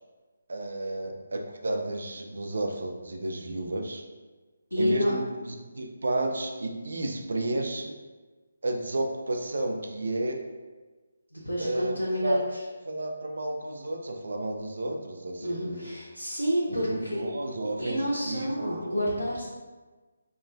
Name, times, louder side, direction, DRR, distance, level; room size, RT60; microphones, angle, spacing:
voice 1, 0.5-4.0 4.8-7.9 8.6-10.4 11.6-12.0 12.2-12.5 12.9-15.9 16.9-19.0, right 1 dB, 60° right, 2 dB, 0.5 m, -32 dB
voice 2, 4.7-5.1 11.3-12.6 15.4-17.2 17.8-19.4, equal, 85° left, -7 dB, 0.8 m, -29 dB
4.8 x 2.4 x 2.5 m, 1.3 s
figure-of-eight pair, 150°, 0 cm